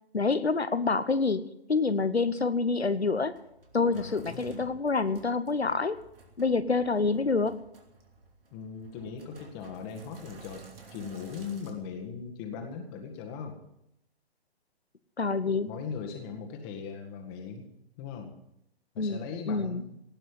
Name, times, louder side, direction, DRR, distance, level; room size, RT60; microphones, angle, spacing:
voice 1, 0.1-3.3 3.7-6.0 6.4-7.5 15.2-15.7 19.0-19.8, left 4 dB, 85° left, 13 dB, 1.2 m, -27 dB
Sink (filling or washing), 2.9-11.7, right 2 dB, 65° right, 2.9 m, -53 dB
voice 2, 3.9-4.7 8.5-10.7 10.9-13.6 15.4-17.7 18.0-18.3 18.9-19.8, left 6 dB, 25° left, 3 dB, 1.9 m, -39 dB
18.0 x 6.4 x 9.4 m, 0.81 s
figure-of-eight pair, 130°, 31 cm